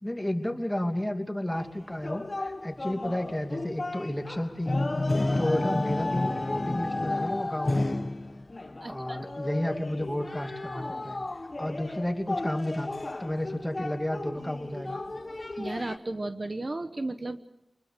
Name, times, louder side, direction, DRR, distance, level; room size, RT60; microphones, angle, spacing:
voice 1, 0.0-4.8 5.3-8.0 8.9-11.2 11.6-12.9 13.2-15.0, left 1 dB, 10° left, 5 dB, 2.7 m, -32 dB
sound 1, 1.5-16.0, left 2 dB, 45° left, 1.2 m, -32 dB
voice 2, 8.8-9.2 15.6-17.5, right 2 dB, 45° right, 9 dB, 1.2 m, -34 dB
25.0 x 21.0 x 6.9 m, 0.85 s
wide cardioid pair, 60°, 0 cm